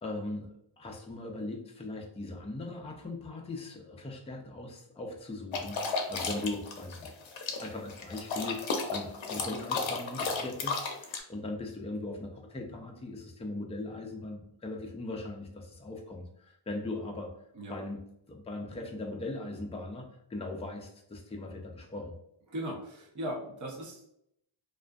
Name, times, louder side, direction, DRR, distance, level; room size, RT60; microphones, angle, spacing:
voice 1, 0.0-5.8 6.1-7.1 7.6-17.3 17.7-18.0 18.3-22.1, left 2 dB, 15° left, 2 dB, 0.3 m, -39 dB
sound 1, 5.5-11.2, left 4 dB, 80° left, 0.6 m, -33 dB
voice 2, 22.5-24.1, equal, 40° right, -2 dB, 0.6 m, -38 dB
2.4 x 2.4 x 2.2 m, 0.76 s
wide cardioid pair, 120°, 46 cm